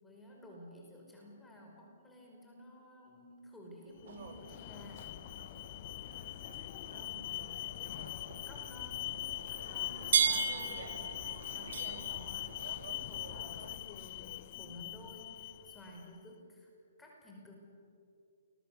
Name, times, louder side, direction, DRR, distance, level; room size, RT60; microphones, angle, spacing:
voice 1, 0.0-5.2 6.9-7.4 7.7-8.2 8.5-16.7 17.0-17.5, left 1 dB, 10° left, -1 dB, 5.3 m, -53 dB
Alarm, 4.0-16.0, left 16 dB, 45° left, 0.6 m, -42 dB
sound 1, 4.1-13.8, right 7 dB, 60° right, 2.2 m, -39 dB
29.0 x 22.0 x 7.1 m, 2.5 s
hypercardioid pair, 130°, 0 cm